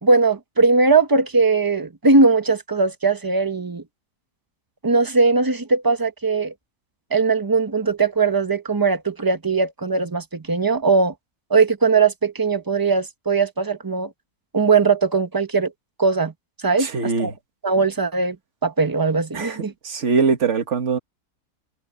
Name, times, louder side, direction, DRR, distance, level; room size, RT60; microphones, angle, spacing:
voice 1, 0.0-3.8 4.8-6.5 7.1-11.1 11.5-14.1 14.5-15.7 16.0-16.3 16.6-17.3 17.6-18.4 18.6-19.7, right 4 dB, 15° right, 1.2 m, -19 dB
voice 2, 16.8-17.3 19.3-19.6 19.8-21.0, right 5 dB, 55° right, 2.0 m, -22 dB
omnidirectional pair, 1.5 m